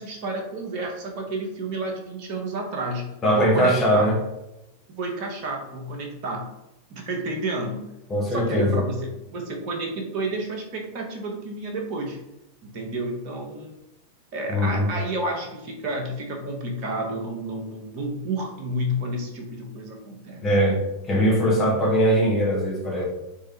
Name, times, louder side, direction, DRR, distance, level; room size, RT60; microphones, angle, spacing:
voice 1, 0.0-4.2 4.9-6.5 6.9-7.9 8.3-12.2 12.6-13.7 14.3-20.8, right 1 dB, 45° right, 1 dB, 0.9 m, -30 dB
voice 2, 3.2-4.2 8.1-8.8 14.5-14.9 20.4-23.0, equal, 20° left, -3 dB, 1.4 m, -21 dB
3.7 x 3.2 x 2.9 m, 0.92 s
figure-of-eight pair, 90°, 0 cm